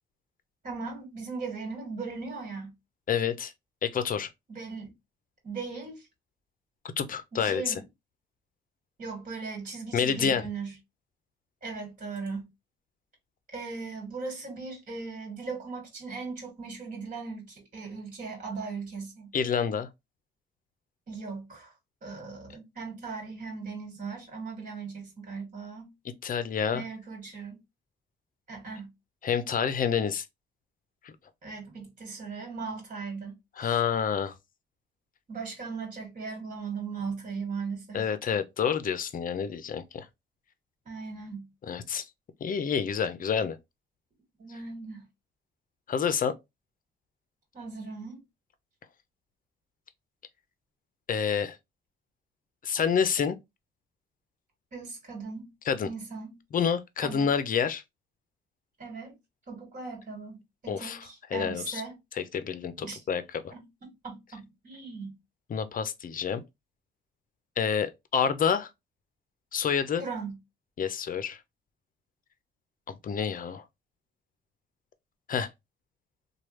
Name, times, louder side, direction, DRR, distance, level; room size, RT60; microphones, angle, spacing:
voice 1, 0.6-2.7 4.5-4.9 5.4-6.1 7.3-7.8 9.0-10.7 11.6-12.5 13.5-19.3 21.1-21.7 22.0-25.9 26.7-27.6 28.5-28.9 31.4-33.8 35.3-38.1 40.8-41.5 44.4-45.0 47.5-48.2 54.7-55.5 55.8-56.4 57.0-57.3 58.8-59.2 59.5-60.4 60.6-62.0 62.8-63.0 63.5-63.7 64.0-65.1 70.0-70.4, right 4 dB, 40° right, 1.8 m, -38 dB
voice 2, 3.1-3.5 3.8-4.3 7.0-7.8 9.9-10.4 19.3-19.9 26.2-26.8 29.2-30.2 31.0-31.1 33.6-34.3 37.9-40.1 41.7-42.0 42.4-43.6 45.9-46.3 51.1-51.6 52.6-53.4 55.6-55.9 56.5-57.8 60.7-61.8 62.1-63.5 65.5-66.4 67.6-68.7 69.5-70.0 70.8-71.4 72.9-73.6 75.3-75.5, left 7 dB, 45° left, 0.6 m, -28 dB
3.2 x 2.3 x 3.1 m
cardioid pair, 90°, 20 cm